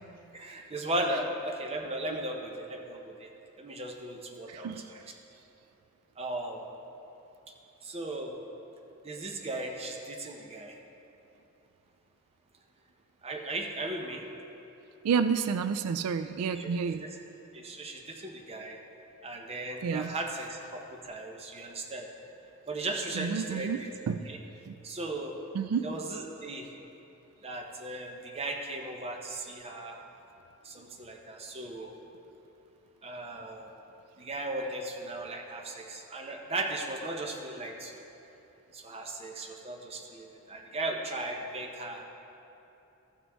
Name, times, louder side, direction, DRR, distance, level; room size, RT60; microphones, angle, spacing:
voice 1, 0.3-3.3 3.6-5.0 6.2-6.6 7.8-8.4 9.0-10.8 13.2-14.2 16.6-16.7 17.0-17.1 17.5-18.8 19.2-22.1 22.7-23.9 24.3-24.4 24.8-25.4 25.8-26.7 27.4-30.0 30.6-31.9 33.0-33.7 34.2-38.0 38.7-42.0, right 2 dB, 25° right, 2 dB, 0.7 m, -37 dB
voice 2, 4.5-4.9 15.0-17.0 19.8-20.2 23.1-24.3 24.7-24.8 25.5-25.9, right 6 dB, 85° right, 10 dB, 0.3 m, -30 dB
14.0 x 6.2 x 3.4 m, 3.0 s
head